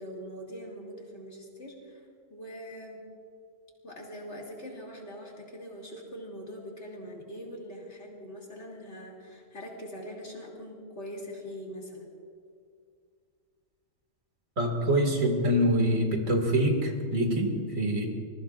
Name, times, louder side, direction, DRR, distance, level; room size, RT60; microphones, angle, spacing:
voice 1, 0.0-2.0 2.3-3.0 3.8-12.1, equal, 55° left, -2 dB, 3.2 m, -42 dB
voice 2, 14.6-18.1, equal, 80° right, 2 dB, 2.7 m, -25 dB
25.0 x 21.5 x 2.5 m, 2.2 s
omnidirectional pair, 1.4 m